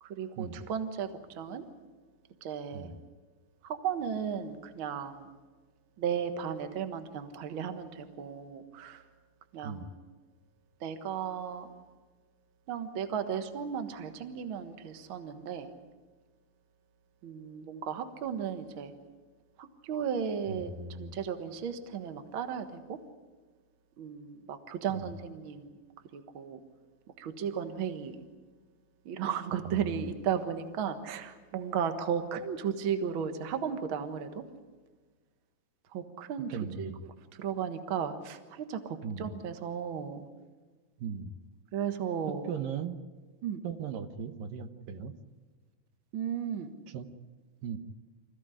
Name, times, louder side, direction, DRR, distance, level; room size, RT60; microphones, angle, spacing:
voice 1, 0.0-1.6 2.4-2.9 3.6-5.3 6.0-9.0 9.5-9.9 10.8-11.7 12.7-15.7 17.2-18.9 19.6-20.7 21.0-23.0 24.0-25.7 26.1-26.6 27.2-28.2 29.0-34.4 35.9-36.5 36.8-37.1 37.4-40.2 41.7-42.5 43.4-43.6 46.1-46.7, right 7 dB, 50° right, 8 dB, 1.7 m, -35 dB
voice 2, 20.5-21.2 24.9-25.1 29.6-30.0 36.5-37.0 39.0-39.3 41.0-41.3 42.3-43.0 43.6-45.2 46.9-47.1 47.6-47.8, right 6 dB, 80° right, 9 dB, 2.7 m, -38 dB
25.5 x 15.5 x 9.9 m, 1.4 s
omnidirectional pair, 4.0 m